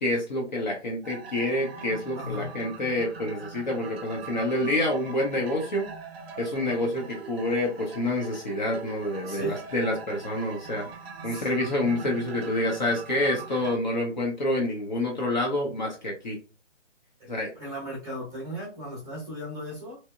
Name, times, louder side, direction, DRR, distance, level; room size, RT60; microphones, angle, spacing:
voice 1, 0.0-5.9 6.4-10.9 11.2-16.4 17.3-17.5, left 1 dB, 40° left, 0 dB, 0.5 m, -28 dB
sound 1, 1.0-13.8, right 5 dB, 55° right, 0.6 m, -42 dB
voice 2, 2.1-2.5 9.2-9.6 11.2-11.5 17.2-20.0, equal, 10° right, -6 dB, 0.6 m, -37 dB
2.9 x 2.0 x 2.2 m, 0.32 s
figure-of-eight pair, 145°, 37 cm